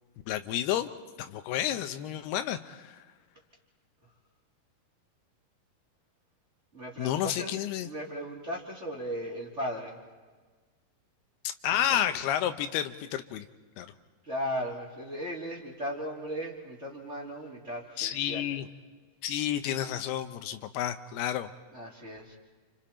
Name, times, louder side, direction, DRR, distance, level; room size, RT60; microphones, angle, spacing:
voice 1, 0.3-0.9 1.2-3.0 7.0-7.9 11.4-13.5 13.8-13.9 18.0-18.7 19.2-21.5, left 11 dB, 80° left, 9 dB, 2.9 m, -30 dB
voice 2, 6.7-7.5 7.8-10.0 11.7-12.0 14.2-18.5 21.7-22.4, equal, 20° right, -2 dB, 3.2 m, -37 dB
29.5 x 28.5 x 4.4 m, 1.4 s
omnidirectional pair, 4.6 m